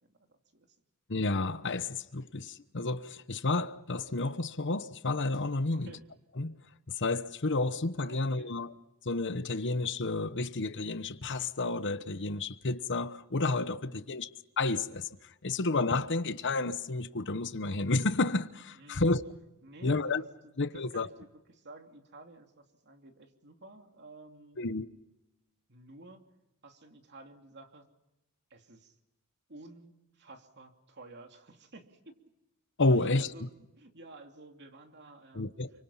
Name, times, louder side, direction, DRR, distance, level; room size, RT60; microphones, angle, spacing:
voice 1, 0.0-0.7 5.7-6.0 8.0-8.5 13.8-14.2 18.8-19.2 19.6-24.6 25.7-26.2 26.6-27.8 28.5-29.0 29.5-32.0 32.9-35.5, right 2 dB, 50° right, 3.0 m, -52 dB
voice 2, 1.1-5.9 6.4-6.6 6.9-8.7 9.0-14.3 14.6-15.1 15.4-19.2 19.8-20.2 20.6-21.1 24.6-24.9 32.8-33.3 35.3-35.7, left 3 dB, 55° left, 1.1 m, -30 dB
29.0 x 25.0 x 5.7 m
head